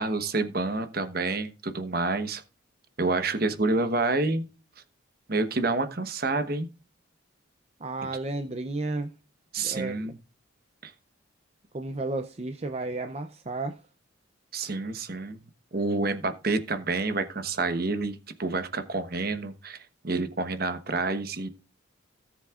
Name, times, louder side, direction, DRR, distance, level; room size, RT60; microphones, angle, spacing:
voice 1, 0.0-2.4 3.0-4.5 5.3-6.7 9.5-10.1 10.8-10.9 14.5-15.4 15.7-21.5, right 3 dB, 50° right, 1.1 m, -28 dB
voice 2, 7.8-9.1 9.6-10.1 11.7-13.8, right 2 dB, 30° right, 0.6 m, -33 dB
17.5 x 7.4 x 2.5 m
head